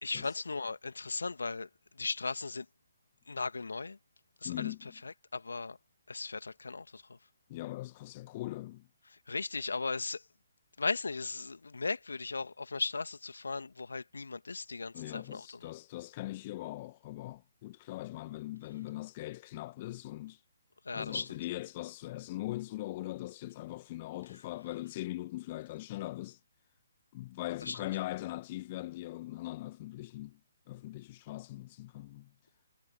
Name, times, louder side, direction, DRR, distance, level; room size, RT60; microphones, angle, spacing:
voice 1, 0.0-2.7 3.3-4.0 4.4-5.8 6.1-7.2 9.1-10.3 10.8-15.7 20.8-21.4 27.6-27.8, left 4 dB, 65° left, 2.3 m, -37 dB
voice 2, 4.4-4.8 7.5-8.9 14.9-20.4 20.9-26.4 27.1-30.4 30.7-32.3, left 17 dB, 30° left, 1.1 m, -41 dB
figure-of-eight pair, 135°, 0 cm